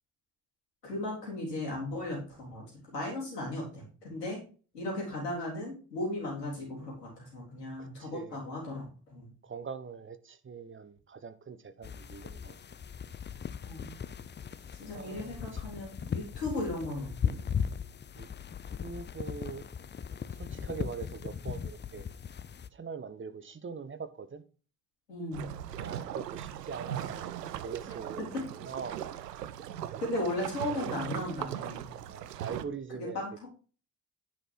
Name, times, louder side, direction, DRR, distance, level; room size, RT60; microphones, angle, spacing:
voice 1, 0.8-4.4 4.7-9.3 13.6-14.0 14.8-17.3 25.1-25.5 28.2-28.4 30.0-31.9 33.0-33.5, left 1 dB, 85° left, 3.7 m, -36 dB
voice 2, 7.8-8.4 9.4-12.5 14.6-15.6 18.1-18.3 18.8-19.6 20.3-22.0 22.7-24.4 25.7-27.4 27.6-29.1 32.1-33.2, right 5 dB, 25° right, 1.2 m, -42 dB
sound 1, 11.8-22.7, left 7 dB, 25° left, 0.6 m, -38 dB
sound 2, 25.3-32.6, right 11 dB, 85° right, 0.6 m, -39 dB
9.8 x 5.9 x 4.8 m
figure-of-eight pair, 45°, 47 cm